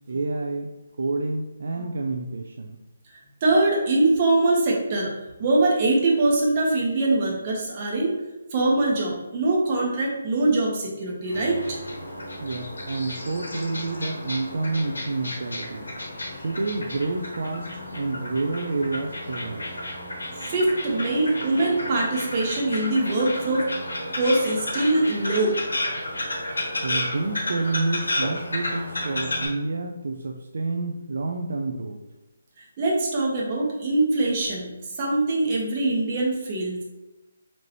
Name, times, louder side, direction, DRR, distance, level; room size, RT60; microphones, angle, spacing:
voice 1, 0.1-0.7 1.0-2.8 12.4-15.9 16.4-19.8 26.8-32.0, right 3 dB, 65° right, 2 dB, 0.3 m, -29 dB
voice 2, 3.4-5.1 5.4-8.2 8.5-11.8 20.4-23.7 24.2-25.6 32.6-34.7 35.0-36.8, right 2 dB, 35° right, -3 dB, 1.1 m, -23 dB
sound 1, 11.3-29.5, left 1 dB, 80° left, 1.2 m, -32 dB
4.1 x 2.9 x 3.0 m, 1.0 s
figure-of-eight pair, 150°, 0 cm